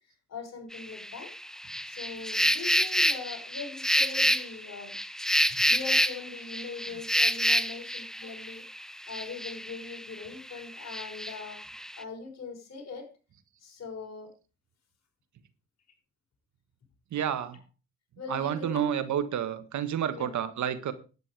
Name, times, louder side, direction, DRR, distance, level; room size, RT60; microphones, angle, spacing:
voice 1, 0.3-1.3 1.9-4.9 5.5-11.6 12.0-13.1 13.6-14.3 17.5-17.6 18.2-18.9 20.1-20.4, left 5 dB, 60° left, 3 dB, 6.0 m, -41 dB
sound 1, 0.7-10.2 10.5-12.0, equal, ahead, 1.0 m, -28 dB
voice 2, 17.1-17.6 18.3-20.9, right 9 dB, 70° right, 12 dB, 1.7 m, -30 dB
11.0 x 9.7 x 5.0 m, 0.33 s
supercardioid pair, 60°, 30 cm